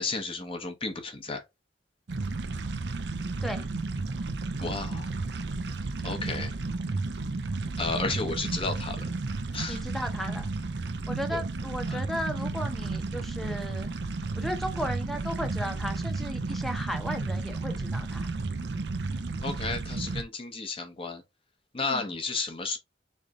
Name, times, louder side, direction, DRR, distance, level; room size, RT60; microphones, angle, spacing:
voice 1, 0.0-1.4 4.6-5.1 6.0-6.5 7.8-9.0 9.5-9.8 11.3-11.4 11.9-12.0 19.4-21.2 21.7-22.8, left 3 dB, 30° left, 0.9 m, -32 dB
sound 1, 2.1-20.2, right 3 dB, 65° right, 0.6 m, -32 dB
voice 2, 9.7-10.5 11.1-13.9 14.4-18.3 21.8-22.1, equal, ahead, 0.8 m, -35 dB
4.0 x 3.4 x 3.6 m
head